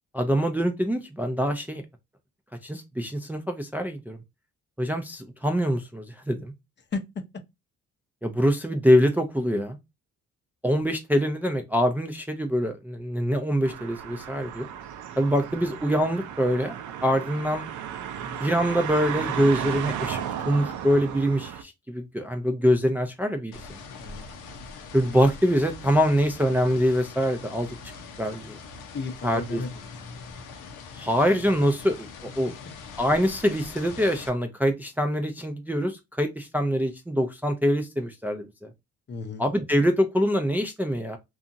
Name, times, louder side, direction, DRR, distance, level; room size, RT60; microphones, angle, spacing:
voice 1, 0.1-1.8 2.6-4.2 4.8-6.5 8.2-9.8 10.6-14.7 15.2-17.6 18.2-23.5 24.9-27.7 28.2-28.6 29.2-29.6 31.0-32.5 33.0-38.5 39.4-41.2, equal, 5° right, 0.4 m, -24 dB
sound 1, 13.6-21.6, right 9 dB, 75° right, 0.5 m, -34 dB
sound 2, 23.5-34.3, left 4 dB, 85° left, 0.7 m, -42 dB
voice 2, 28.9-30.1 39.1-39.4, left 3 dB, 35° left, 0.6 m, -34 dB
2.7 x 2.4 x 2.4 m
cardioid pair, 90°, 30 cm